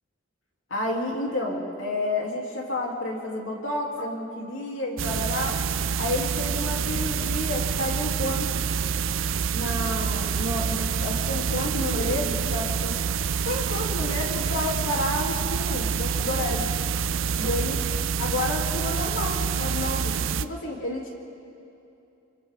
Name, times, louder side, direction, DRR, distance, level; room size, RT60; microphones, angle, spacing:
voice 1, 0.7-5.5 6.0-8.5 9.5-13.0 13.5-16.7 17.4-17.8 18.2-21.1, left 1 dB, 85° left, -2 dB, 3.5 m, -30 dB
sound 1, 5.0-20.5, right 6 dB, 90° right, 0.5 m, -27 dB
28.5 x 28.5 x 3.9 m, 2.8 s
head